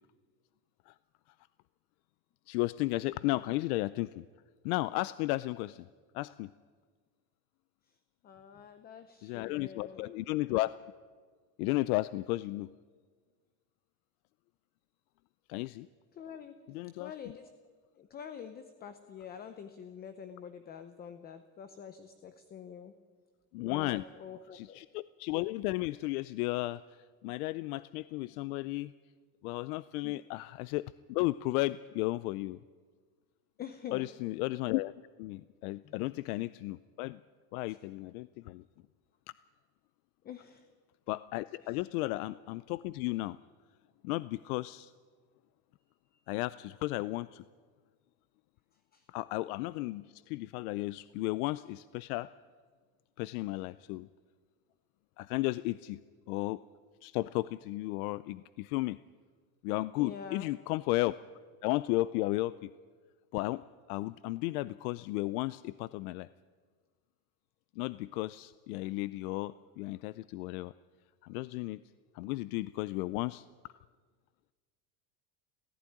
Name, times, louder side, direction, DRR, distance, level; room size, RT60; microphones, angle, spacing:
voice 1, 2.5-4.2 4.6-5.9 6.1-6.5 9.2-10.7 11.6-12.7 15.5-15.9 16.7-17.1 23.5-24.0 24.5-26.8 27.2-28.9 29.4-30.8 31.1-32.6 33.9-34.9 35.2-37.2 37.5-38.6 41.1-43.4 44.0-44.9 46.3-47.4 49.1-52.3 53.2-54.1 55.2-56.0 56.3-56.6 57.0-59.0 59.6-61.1 61.6-62.7 63.3-63.6 63.9-66.3 67.8-70.7 71.2-71.8 72.1-73.4, left 19 dB, 85° left, 17 dB, 0.6 m, -34 dB
voice 2, 8.2-10.1 16.1-16.6 17.0-17.5 18.0-22.9 23.7-24.8 30.0-30.2 33.6-34.1 35.8-36.4 37.7-37.8 40.2-40.7 41.6-41.8 48.9-49.1 53.2-53.3 60.0-60.5, left 8 dB, 20° left, 10 dB, 0.7 m, -46 dB
17.0 x 15.5 x 10.0 m, 1.5 s
cardioid pair, 175°, 43 cm